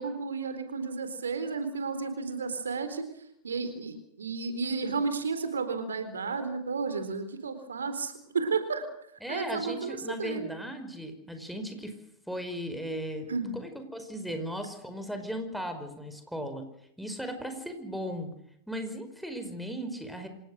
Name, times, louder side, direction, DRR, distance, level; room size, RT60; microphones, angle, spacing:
voice 1, 0.0-3.1 3.4-8.8 9.3-10.5 13.3-13.5, right 4 dB, 75° right, 10 dB, 4.1 m, -32 dB
voice 2, 9.2-11.9 12.3-13.3 13.5-16.6 17.0-18.3 18.7-20.3, equal, ahead, 7 dB, 5.2 m, -37 dB
27.0 x 18.5 x 6.5 m, 0.73 s
figure-of-eight pair, 95°, 0 cm